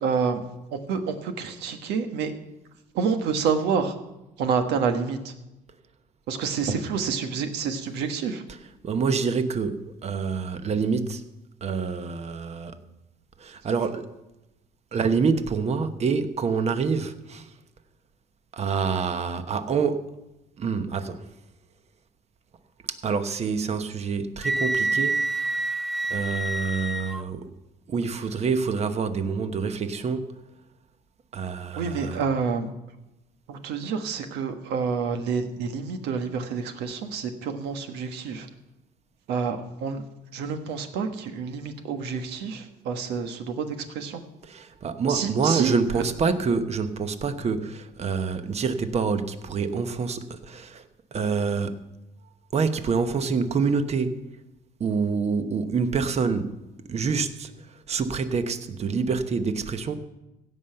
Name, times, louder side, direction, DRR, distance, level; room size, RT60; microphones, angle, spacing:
voice 1, 0.0-0.4 0.7-2.3 2.9-3.9 4.4-5.3 6.3-8.4 31.7-32.7 33.5-38.5 39.3-40.0 40.3-44.2 45.1-46.0, right 6 dB, 85° right, 1.4 m, -28 dB
voice 2, 8.8-11.2 11.6-12.8 13.4-14.1 14.9-17.5 18.5-20.1 20.6-21.3 22.9-25.3 26.1-27.5 27.9-30.3 31.3-32.2 44.4-50.8 51.1-51.8 52.5-54.3 54.8-56.5 56.9-57.5 57.9-60.0, right 5 dB, 40° right, 1.0 m, -26 dB
Wind instrument woodwind instrument, 24.4-27.2, right 2 dB, ahead, 0.4 m, -27 dB
16.5 x 5.6 x 7.8 m
cardioid pair, 110°, 17 cm